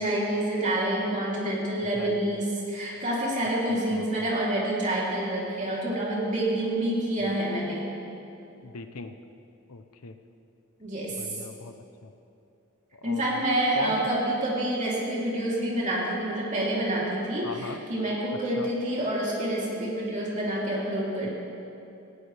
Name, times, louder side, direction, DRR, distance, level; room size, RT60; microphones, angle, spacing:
voice 1, 0.0-7.9 10.8-11.4 13.0-21.3, right 1 dB, 35° right, -5 dB, 3.3 m, -28 dB
voice 2, 1.9-2.4 3.9-4.3 7.2-7.3 8.6-9.2 9.7-10.2 11.2-11.7 12.0-12.1 12.9-13.5 13.8-14.1 17.4-17.8 18.3-18.7 21.2-21.3, left 4 dB, 80° left, 8 dB, 0.8 m, -39 dB
18.5 x 15.5 x 3.4 m, 2.8 s
head